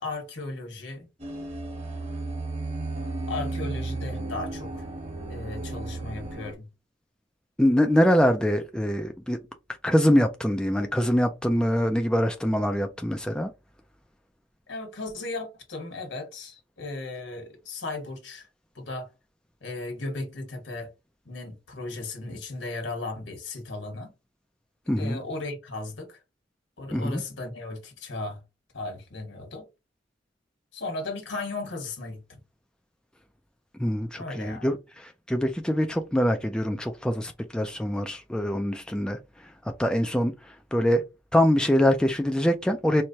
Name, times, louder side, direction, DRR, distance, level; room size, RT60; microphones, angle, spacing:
voice 1, 0.0-1.1 3.3-4.9 5.3-6.7 14.7-18.5 18.7-19.1 19.6-20.9 21.2-24.1 25.0-26.2 26.8-28.4 28.7-29.6 30.7-32.4 34.2-34.7, left 2 dB, 70° left, 1.4 m, -36 dB
sound 1, 1.2-6.5, right 2 dB, 35° right, 1.2 m, -34 dB
voice 2, 7.6-9.4 9.8-13.5 24.9-25.2 26.9-27.2 33.7-41.0 41.3-43.0, equal, 5° left, 0.3 m, -24 dB
4.5 x 2.2 x 2.7 m
head